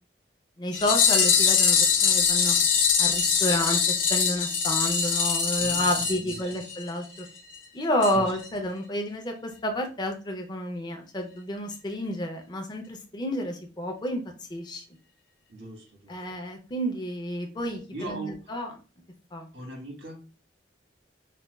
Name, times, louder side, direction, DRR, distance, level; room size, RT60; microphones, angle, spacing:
voice 1, 0.6-7.3 7.7-14.2 14.5-14.8 16.1-18.7 19.3-19.5, left 1 dB, 25° left, 3 dB, 0.5 m, -30 dB
sound 1, 0.7-6.9 7.2-7.3 7.5-7.6 8.0-8.1 8.4-8.5, left 6 dB, 85° left, 0.9 m, -23 dB
voice 2, 5.6-6.4 8.1-8.4 15.5-16.2 17.9-18.3 19.5-20.2, right 2 dB, 85° right, 0 dB, 1.3 m, -39 dB
4.1 x 2.2 x 2.2 m, 0.35 s
head